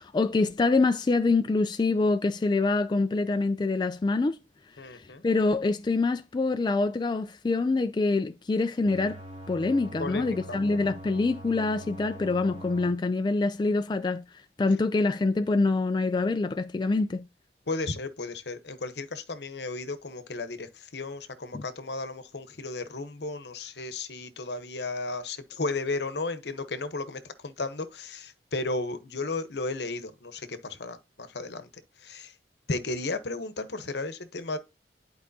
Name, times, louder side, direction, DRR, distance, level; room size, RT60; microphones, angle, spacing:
voice 1, 0.0-4.4 4.9-9.2 9.5-14.2 14.6-17.2 21.5-21.6, left 3 dB, 25° left, 0.3 m, -25 dB
voice 2, 4.8-5.2 10.0-10.9 17.7-31.7 32.0-32.3 32.7-34.6, left 3 dB, 70° left, 0.9 m, -34 dB
sound 1, 8.9-12.9, right 1 dB, 40° right, 2.4 m, -43 dB
11.0 x 4.7 x 2.7 m
head